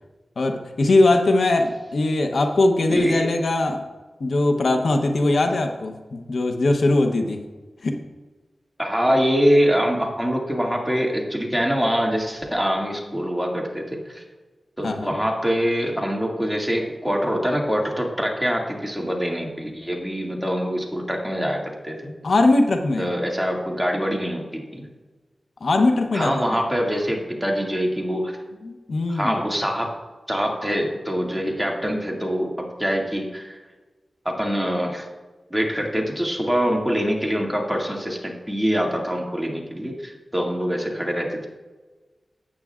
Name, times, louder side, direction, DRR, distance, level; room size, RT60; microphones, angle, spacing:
voice 1, 0.4-3.8 4.2-7.4 7.8-8.0 14.8-15.1 22.2-23.1 25.6-26.3 28.6-29.3, left 2 dB, 80° left, 5 dB, 0.8 m, -20 dB
voice 2, 2.9-3.3 8.8-14.2 14.8-22.1 23.0-24.8 26.1-28.4 29.1-29.9 30.3-33.6 34.2-35.1 35.5-41.5, equal, ahead, -1 dB, 2.1 m, -24 dB
13.5 x 8.6 x 2.4 m, 1.2 s
cardioid pair, 60°, 0 cm